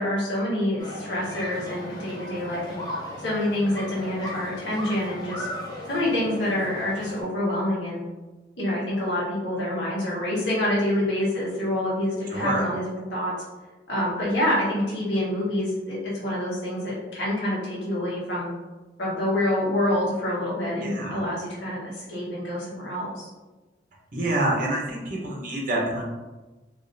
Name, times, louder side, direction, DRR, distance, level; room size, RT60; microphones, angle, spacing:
voice 1, 0.0-2.8 3.2-5.5 5.9-8.0 8.6-12.8 13.1-13.3 13.9-18.5 19.0-23.3, left 1 dB, 80° left, -7 dB, 1.5 m, -27 dB
sound 1, 0.8-7.2, left 1 dB, 25° left, 0.8 m, -37 dB
voice 2, 12.3-12.6 20.8-21.2 24.1-26.0, right 1 dB, 50° right, -3 dB, 1.0 m, -27 dB
3.8 x 3.0 x 2.7 m, 1.2 s
head